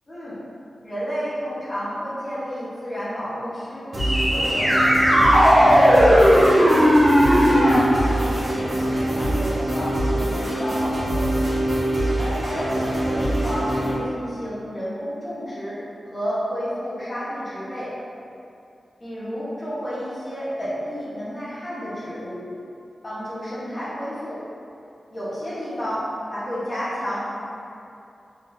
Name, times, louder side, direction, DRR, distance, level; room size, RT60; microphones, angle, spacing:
voice 1, 0.8-3.9 4.3-6.8 7.4-11.3 12.2-15.8 16.1-17.9 19.0-22.5 23.0-24.4 25.1-27.2, equal, 25° left, -10 dB, 1.1 m, -31 dB
sound 1, 3.9-13.9, right 1 dB, 60° right, 1.4 m, -24 dB
sound 2, 4.0-7.8, equal, 15° right, 0.7 m, -16 dB
4.0 x 3.9 x 2.6 m, 2.6 s
wide cardioid pair, 160°, 0 cm